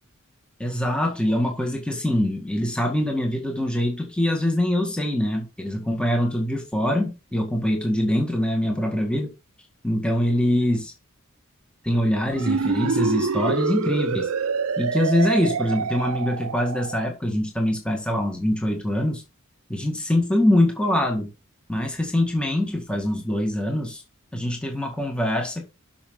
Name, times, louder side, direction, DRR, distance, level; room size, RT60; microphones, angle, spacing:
voice 1, 0.6-9.3 9.8-10.9 11.8-14.3 14.8-19.2 19.7-21.3 21.7-24.0 24.3-25.6, left 1 dB, 5° left, 1.9 m, -24 dB
sound 1, 12.3-17.1, right 5 dB, 80° right, 0.6 m, -26 dB
12.0 x 5.9 x 3.8 m
head